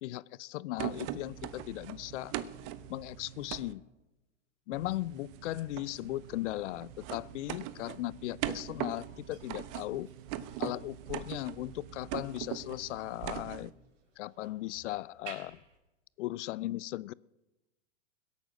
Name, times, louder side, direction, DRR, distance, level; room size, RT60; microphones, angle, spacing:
voice 1, 0.0-2.3 2.9-3.8 4.7-10.1 10.6-13.7 14.2-15.6 16.2-17.1, left 17 dB, 65° left, 23 dB, 0.5 m, -37 dB
sound 1, 0.8-3.7 4.7-13.7, right 12 dB, 40° right, 0.9 m, -41 dB
sound 2, 6.1-15.8, right 5 dB, 75° right, 4.9 m, -57 dB
21.0 x 8.6 x 6.4 m, 1.0 s
hypercardioid pair, 120°, 38 cm